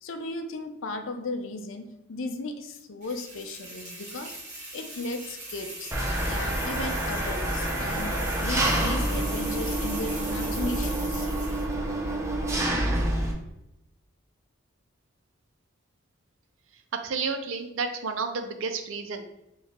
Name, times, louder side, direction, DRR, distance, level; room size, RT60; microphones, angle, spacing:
voice 1, 0.0-4.3 4.7-5.9 6.3-11.3, left 2 dB, 65° left, 6 dB, 0.5 m, -36 dB
sound 1, 3.0-11.7, right 1 dB, 35° right, 1.7 m, -40 dB
Engine, 5.9-13.3, right 1 dB, 15° right, 0.6 m, -28 dB
voice 2, 17.0-19.2, right 4 dB, 70° right, 7 dB, 0.5 m, -31 dB
4.4 x 3.2 x 3.6 m, 0.88 s
head